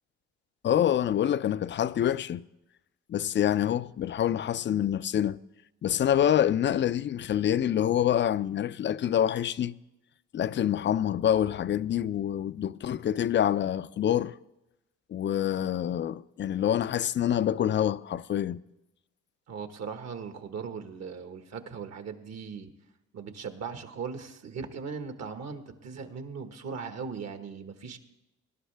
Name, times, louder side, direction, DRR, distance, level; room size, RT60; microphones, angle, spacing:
voice 1, 0.6-2.4 3.1-5.4 5.8-9.7 10.3-14.3 15.1-18.6, left 10 dB, 40° left, 0.4 m, -26 dB
voice 2, 19.5-22.7 23.1-28.0, right 5 dB, 60° right, 1.4 m, -39 dB
19.5 x 11.5 x 3.4 m
cardioid pair, 90°, 30 cm